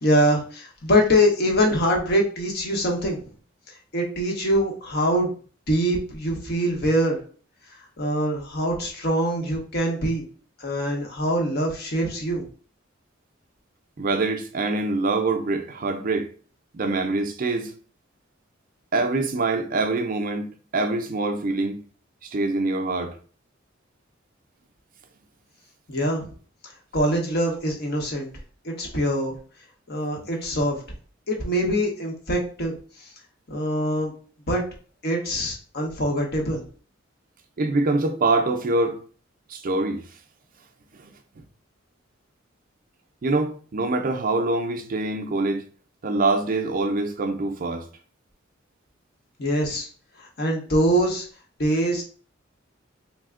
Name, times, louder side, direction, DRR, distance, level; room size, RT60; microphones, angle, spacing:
voice 1, 0.0-3.2 3.9-5.3 5.7-7.2 8.0-10.3 10.6-12.4 25.9-26.3 26.9-28.3 28.6-29.3 29.9-30.8 31.3-33.1 33.5-34.1 34.5-34.6 35.0-36.6 49.4-49.9 50.2-51.3 51.6-52.0, equal, 55° left, 0.9 m, -23 dB
voice 2, 14.0-16.3 16.7-17.7 18.9-20.5 20.7-21.8 22.2-23.1 37.6-39.0 39.5-40.0 43.2-45.6 46.0-47.9, right 2 dB, 45° right, 0.5 m, -24 dB
3.2 x 2.1 x 3.6 m
head